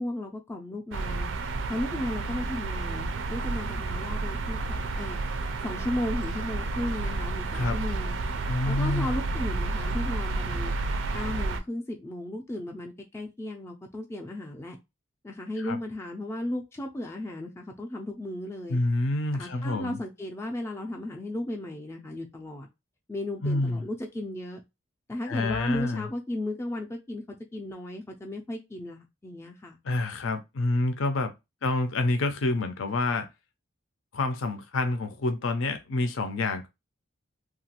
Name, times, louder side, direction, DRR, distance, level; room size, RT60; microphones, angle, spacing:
voice 1, 0.0-1.3 1.7-8.2 8.7-10.7 11.1-14.8 15.2-18.8 19.3-22.7 23.1-24.6 25.1-29.8, left 1 dB, 15° left, 0.3 m, -35 dB
sound 1, 0.9-11.6, right 3 dB, 65° right, 0.4 m, -31 dB
voice 2, 8.4-9.1 15.6-15.8 18.7-20.0 23.4-23.9 25.3-26.1 29.8-31.3 31.6-33.3 34.1-36.7, left 2 dB, 75° left, 0.5 m, -28 dB
2.9 x 2.3 x 2.8 m
head